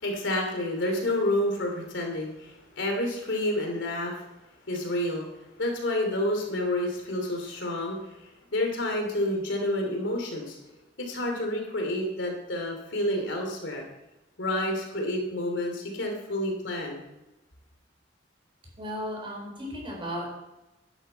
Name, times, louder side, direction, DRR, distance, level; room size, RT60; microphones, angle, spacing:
voice 1, 0.0-4.2 4.7-5.3 5.6-10.6 11.0-13.8 14.4-17.0, left 1 dB, 75° left, 2 dB, 2.8 m, -29 dB
voice 2, 18.8-20.3, equal, 25° right, -2 dB, 4.2 m, -35 dB
11.0 x 10.0 x 4.5 m, 0.99 s
head